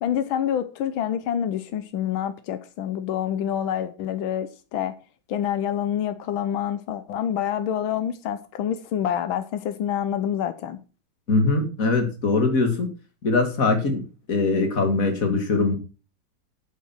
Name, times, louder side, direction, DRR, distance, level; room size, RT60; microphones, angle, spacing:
voice 1, 0.0-4.9 5.3-10.8, left 9 dB, 90° left, 1.7 m, -27 dB
voice 2, 11.3-12.9 13.2-15.7, left 3 dB, 45° left, 2.6 m, -22 dB
8.8 x 8.5 x 5.9 m
omnidirectional pair, 2.1 m